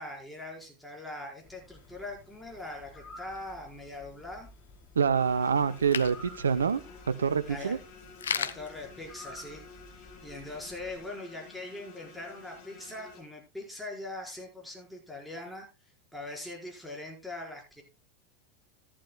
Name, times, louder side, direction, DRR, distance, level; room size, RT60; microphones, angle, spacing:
voice 1, 0.0-4.5 7.4-7.8 8.3-9.6 10.2-15.7 16.1-17.8, left 2 dB, ahead, -2 dB, 4.8 m, -41 dB
sound 1, 1.4-11.1, left 1 dB, 25° left, 4.7 m, -53 dB
sound 2, 1.7-9.8, left 7 dB, 80° left, 0.6 m, -42 dB
voice 2, 5.0-6.8 7.2-7.8, right 6 dB, 80° right, 14 dB, 0.7 m, -26 dB
sound 3, 5.1-13.2, left 4 dB, 55° left, 5.1 m, -51 dB
13.5 x 11.5 x 2.3 m, 0.27 s
figure-of-eight pair, 85°, 0 cm